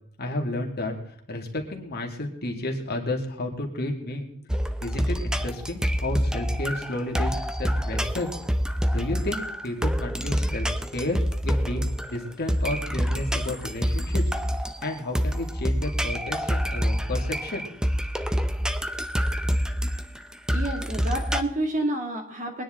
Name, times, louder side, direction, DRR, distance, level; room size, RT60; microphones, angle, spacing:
voice 1, 0.2-1.0 1.3-4.3 4.8-8.3 8.9-10.7 10.9-11.2 11.4-14.2 14.8-17.7, left 1 dB, 45° left, 2 dB, 2.4 m, -31 dB
sound 1, 4.5-21.4, equal, 5° right, 0.6 m, -27 dB
voice 2, 20.5-22.6, right 1 dB, 35° right, 3 dB, 2.4 m, -29 dB
22.5 x 10.0 x 3.8 m, 0.65 s
head